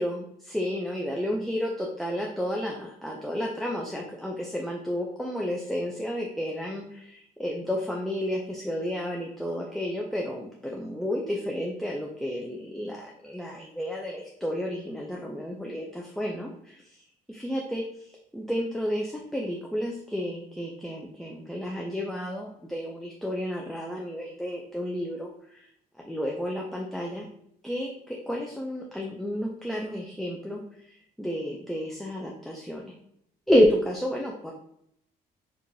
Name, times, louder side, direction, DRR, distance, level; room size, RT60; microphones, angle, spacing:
voice 1, 0.0-25.7 26.0-27.3 27.6-32.9 33.5-34.5, equal, ahead, -1 dB, 0.4 m, -31 dB
4.5 x 2.5 x 2.6 m, 0.73 s
cardioid pair, 110°, 17 cm